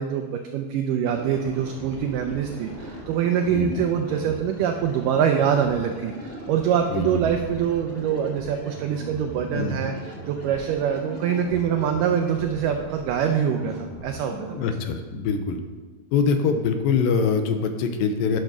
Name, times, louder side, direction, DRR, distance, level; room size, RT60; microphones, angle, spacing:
voice 1, 0.0-14.7, right 8 dB, 90° right, 4 dB, 1.8 m, -24 dB
sound 1, 1.0-14.6, right 1 dB, 15° left, 0.5 m, -39 dB
voice 2, 3.5-3.8 6.9-7.2 9.5-9.8 14.5-15.6 16.1-18.4, left 5 dB, 80° left, 7 dB, 2.3 m, -24 dB
11.0 x 5.2 x 6.0 m, 1.4 s
omnidirectional pair, 4.4 m